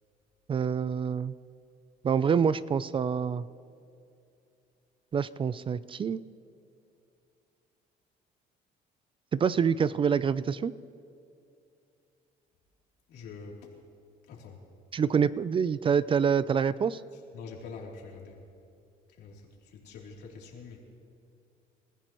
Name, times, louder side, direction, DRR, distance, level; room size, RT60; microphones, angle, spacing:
voice 1, 0.5-1.3 2.0-3.5 5.1-6.2 9.3-10.7 14.9-17.0, right 7 dB, 30° right, 17 dB, 0.4 m, -26 dB
voice 2, 13.1-13.7 14.3-14.6 17.3-18.4 19.2-20.8, left 4 dB, 80° left, -1 dB, 3.1 m, -45 dB
28.5 x 15.0 x 3.1 m, 2.6 s
cardioid pair, 110°, 17 cm